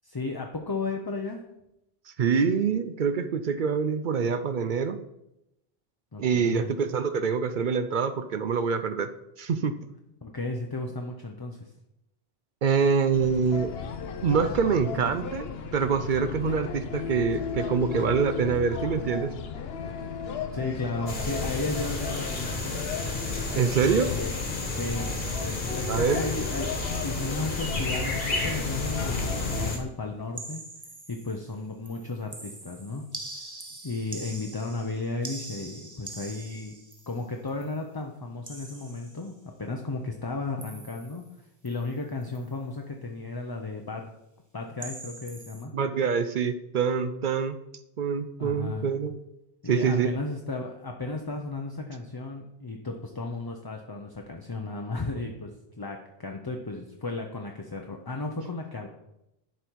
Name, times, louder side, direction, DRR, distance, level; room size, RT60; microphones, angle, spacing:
voice 1, 0.0-1.4 6.1-6.7 10.2-11.7 20.5-22.8 23.8-24.3 24.8-30.6 31.1-33.0 33.8-36.7 37.1-44.0 44.5-45.7 48.4-48.9 49.6-58.9, left 3 dB, 25° left, 2 dB, 0.6 m, -34 dB
voice 2, 2.2-5.0 6.2-9.1 9.4-9.7 12.6-13.7 14.2-19.3 23.6-24.1 25.9-26.2 45.7-47.6 48.0-49.2 49.7-50.1, right 6 dB, 60° right, 11 dB, 0.6 m, -25 dB
sound 1, 13.1-29.7, left 6 dB, 70° left, 1.0 m, -35 dB
sound 2, 21.1-29.8, left 2 dB, 50° left, 1.7 m, -32 dB
sound 3, 30.4-31.5 31.9-37.8 38.4-39.4 40.6-41.3 41.7-41.9 42.2-42.5 44.8-45.6, right 2 dB, 20° right, 0.9 m, -43 dB
11.0 x 5.1 x 4.6 m, 0.87 s
omnidirectional pair, 1.1 m